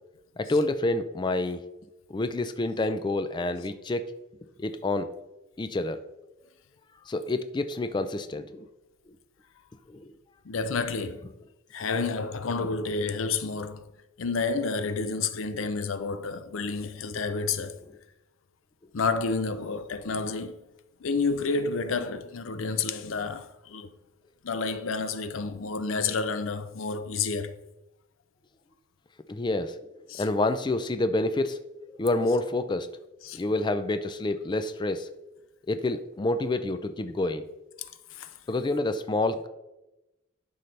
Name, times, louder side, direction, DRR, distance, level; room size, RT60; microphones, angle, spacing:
voice 1, 0.4-1.6 2.1-4.1 4.6-5.1 5.6-6.0 7.1-8.7 9.9-10.1 29.3-29.7 30.2-31.6 32.0-32.9 33.3-35.1 35.7-37.5 38.5-39.5, left 2 dB, 20° left, 0.4 m, -28 dB
voice 2, 10.4-11.3 11.7-13.9 14.2-17.8 18.9-20.6 21.0-23.9 24.4-27.6 30.1-30.3 33.2-33.4 37.8-38.3, left 4 dB, 80° left, 0.6 m, -30 dB
11.5 x 5.4 x 3.3 m
head